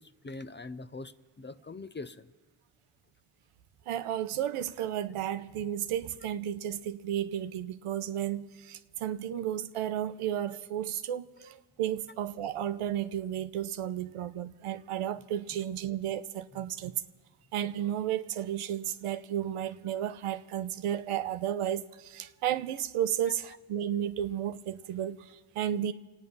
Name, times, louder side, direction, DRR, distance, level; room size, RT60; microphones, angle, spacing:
voice 1, 0.0-2.3 15.5-15.6, left 3 dB, 20° left, 0.6 m, -43 dB
voice 2, 3.9-16.9 17.5-25.9, right 10 dB, 90° right, 0.8 m, -33 dB
28.0 x 9.3 x 5.4 m
cardioid pair, 75°, 50 cm